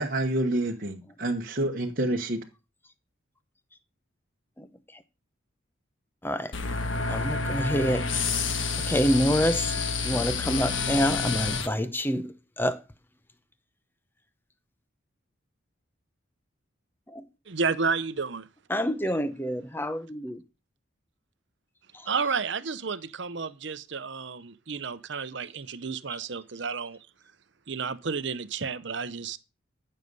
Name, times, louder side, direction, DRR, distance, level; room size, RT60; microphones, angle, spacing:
voice 1, 0.0-2.4, right 1 dB, 45° right, 1.1 m, -28 dB
sound 1, 6.5-11.7, left 4 dB, 70° left, 1.6 m, -29 dB
voice 2, 7.1-8.3 8.8-12.8 17.1-17.2 18.7-20.4 21.9-22.1, equal, 10° left, 0.7 m, -27 dB
voice 3, 17.5-18.5 22.1-27.0 27.7-29.4, right 5 dB, 60° right, 0.8 m, -31 dB
14.5 x 6.6 x 5.5 m
head